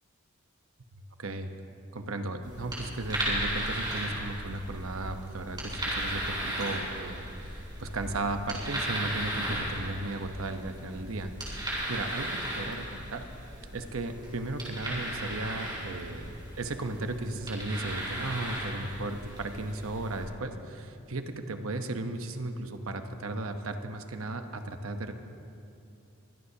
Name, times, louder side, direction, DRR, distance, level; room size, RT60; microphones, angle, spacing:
voice 1, 1.2-1.5 1.9-13.3 13.7-25.1, right 2 dB, 75° right, 7 dB, 1.0 m, -35 dB
sound 1, 2.4-20.2, right 1 dB, 20° right, 4.4 m, -36 dB
23.0 x 16.5 x 2.8 m, 2.7 s
head